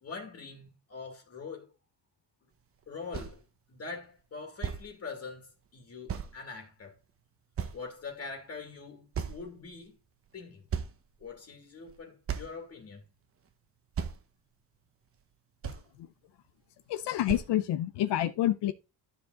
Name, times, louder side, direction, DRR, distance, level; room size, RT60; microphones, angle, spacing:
voice 1, 0.0-1.7 2.9-3.4 3.7-7.0 7.7-10.0 10.3-10.6 11.2-13.0, left 4 dB, 35° left, 2.3 m, -43 dB
sound 1, 2.8-2.9 3.1-3.4 4.2-4.3 4.6-4.8 6.1-6.3 7.0-7.1 7.6-8.1 9.1-9.7 10.3-10.4 10.7-11.3 11.9-12.0 12.3-12.6 13.5-13.6 13.9-14.2 15.2-15.3 15.6-15.9 16.9-17.0 17.3-17.5, right 7 dB, 30° right, 1.0 m, -35 dB
voice 2, 16.9-18.7, left 13 dB, 75° left, 0.8 m, -28 dB
12.0 x 6.8 x 3.9 m
cardioid pair, 175°, 42 cm